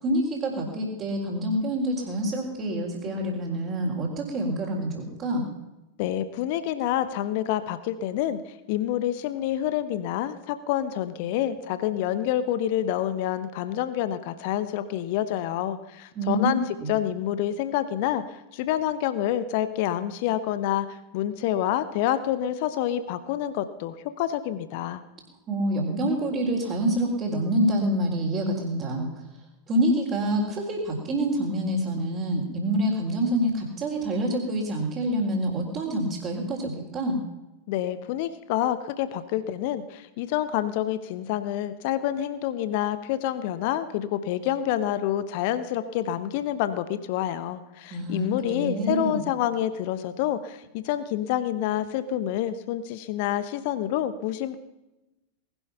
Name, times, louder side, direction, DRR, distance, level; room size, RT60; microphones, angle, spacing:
voice 1, 0.0-5.5 16.2-16.5 16.8-16.9 25.5-29.1 29.7-37.2 47.9-49.2, right 1 dB, 30° right, -5 dB, 3.8 m, -27 dB
voice 2, 6.0-25.0 37.7-54.6, left 11 dB, 50° left, 13 dB, 1.0 m, -28 dB
19.5 x 12.0 x 5.7 m, 1.0 s
figure-of-eight pair, 90°, 0 cm